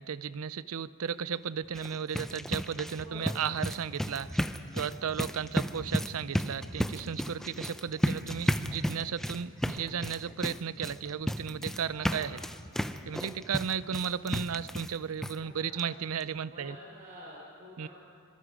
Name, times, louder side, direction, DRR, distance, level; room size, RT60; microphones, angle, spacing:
voice 1, 0.0-4.4 4.7-12.4 13.1-16.8 17.8-17.9, right 7 dB, 90° right, 17 dB, 0.5 m, -34 dB
sound 1, 1.6-15.0 15.2-15.4 15.8-15.9 16.2-16.3, equal, ahead, 0.6 m, -33 dB
voice 2, 2.9-3.7 11.9-12.3 15.3-15.8 16.4-17.9, equal, 40° right, -6 dB, 4.5 m, -48 dB
25.5 x 23.0 x 5.0 m, 2.2 s
head